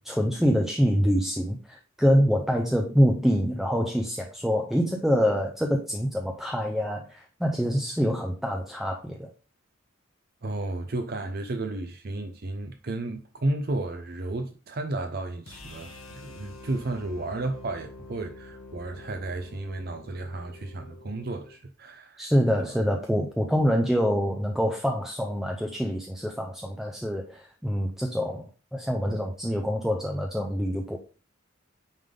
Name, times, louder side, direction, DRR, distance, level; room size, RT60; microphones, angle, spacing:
voice 1, 0.0-9.3 22.2-28.5 28.7-31.0, equal, ahead, 0.6 m, -25 dB
voice 2, 10.4-22.3 22.6-22.7, right 2 dB, 50° right, 0.6 m, -33 dB
sound 1, 15.5-21.6, left 2 dB, 85° left, 1.4 m, -47 dB
9.2 x 3.5 x 3.8 m
head